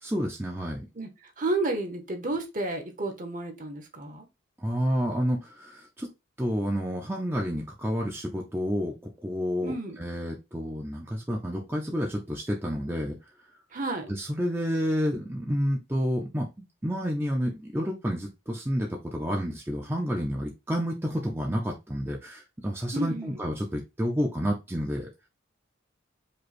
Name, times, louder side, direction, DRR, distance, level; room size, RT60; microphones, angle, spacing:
voice 1, 0.0-0.9 4.6-6.1 6.4-8.9 9.2-13.2 14.1-25.1, equal, 10° right, 0.6 m, -30 dB
voice 2, 1.4-4.3 9.6-10.0 13.7-14.1 22.9-23.4, right 2 dB, 40° right, 1.1 m, -31 dB
5.3 x 2.3 x 4.2 m
head